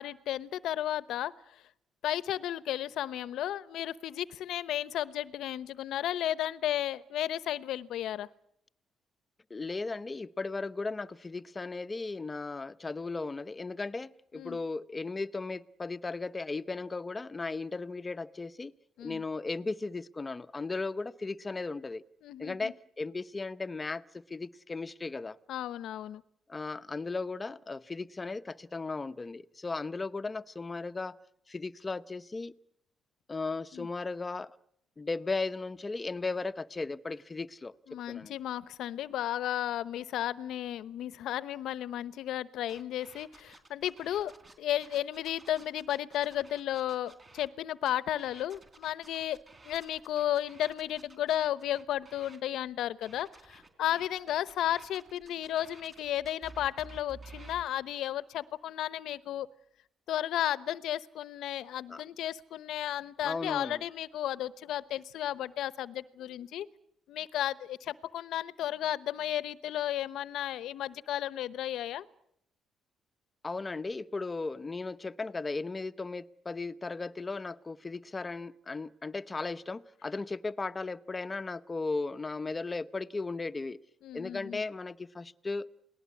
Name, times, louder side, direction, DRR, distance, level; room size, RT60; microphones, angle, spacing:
voice 1, 0.0-1.6 2.0-8.3 14.3-14.6 19.0-19.2 22.2-22.7 25.5-26.2 33.7-33.9 37.9-49.4 49.6-59.5 60.1-66.7 67.1-72.1 84.0-84.6, left 12 dB, 80° left, 0.9 m, -34 dB
voice 2, 9.5-18.7 19.0-22.0 22.4-25.4 26.5-31.2 31.5-32.5 33.3-34.5 35.0-38.4 61.9-62.0 63.2-63.8 73.4-83.8 84.1-85.7, left 3 dB, 25° left, 0.9 m, -36 dB
sound 1, 42.7-47.5 47.8-52.4 53.0-57.6, right 3 dB, 30° right, 4.0 m, -53 dB
28.5 x 19.0 x 8.5 m
cardioid pair, 90°, 0 cm